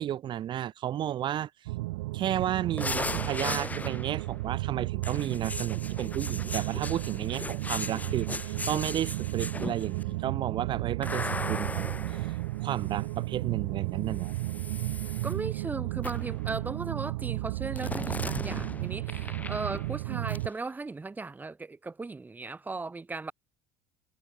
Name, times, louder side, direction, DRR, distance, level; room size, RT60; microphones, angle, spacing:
voice 1, 0.0-1.5 2.1-12.3 12.6-14.3, right 11 dB, 45° right, 1.0 m, -33 dB
sound 1, 1.7-20.5, right 20 dB, 85° right, 1.6 m, -33 dB
sound 2, 2.8-4.3 5.0-10.0 11.0-13.2 14.1-15.3 16.0-16.4 17.8-20.0 20.3-20.4, left 3 dB, 15° left, 2.0 m, -38 dB
voice 2, 15.2-23.3, right 3 dB, 15° right, 1.5 m, -37 dB
supercardioid pair, 95°, 11 cm